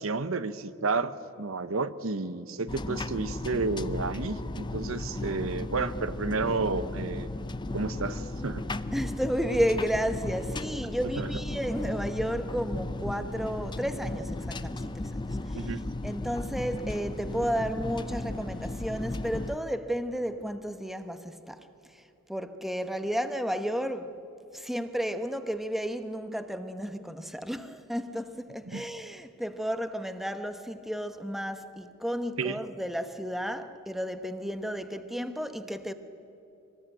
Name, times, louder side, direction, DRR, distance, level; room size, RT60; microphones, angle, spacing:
voice 1, 0.0-7.3 7.7-8.6 11.2-11.3 15.5-15.8 28.7-28.8 32.4-32.6, right 3 dB, 85° right, 0.9 m, -31 dB
sound 1, 2.7-19.6, left 2 dB, 20° left, 0.6 m, -35 dB
voice 2, 8.9-15.7 16.0-21.7 22.3-24.2 24.5-35.9, equal, ahead, 1.0 m, -32 dB
24.5 x 19.5 x 9.1 m
head